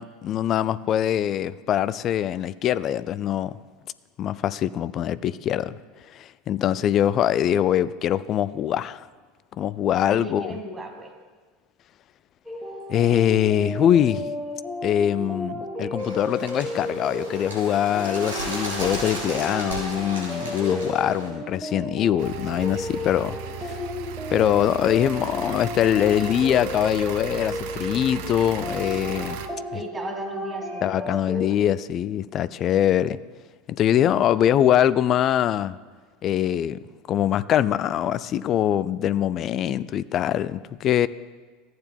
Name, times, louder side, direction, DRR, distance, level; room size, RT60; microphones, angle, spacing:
voice 1, 0.0-3.6 4.2-5.8 6.1-9.0 9.6-10.6 12.9-14.3 14.8-23.4 23.6-23.8 24.3-29.4 29.7-29.8 30.8-33.2 33.7-35.7 36.2-36.8 37.1-41.1, left 10 dB, 40° left, 17 dB, 0.3 m, -23 dB
voice 2, 10.0-11.1 29.7-31.5, right 2 dB, 20° right, 3 dB, 1.6 m, -37 dB
sound 1, 12.4-31.5, left 1 dB, ahead, 1.3 m, -33 dB
Bird, 16.0-21.3, right 1 dB, 75° right, 2.9 m, -34 dB
sound 2, 22.2-29.5, right 7 dB, 55° right, 0.6 m, -36 dB
14.5 x 9.2 x 2.2 m, 1.4 s
figure-of-eight pair, 75°, 0 cm